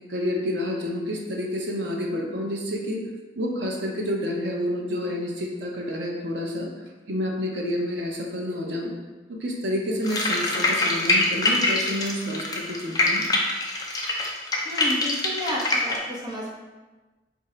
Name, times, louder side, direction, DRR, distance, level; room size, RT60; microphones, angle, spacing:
voice 1, 0.1-3.0 3.4-6.7 7.1-8.9 9.4-13.2, left 1 dB, 90° right, 0 dB, 0.7 m, -29 dB
sound 1, 10.0-16.0, left 2 dB, 20° left, 0.4 m, -24 dB
voice 2, 14.6-16.6, equal, 25° right, -5 dB, 0.6 m, -31 dB
3.6 x 2.6 x 4.3 m, 1.2 s
head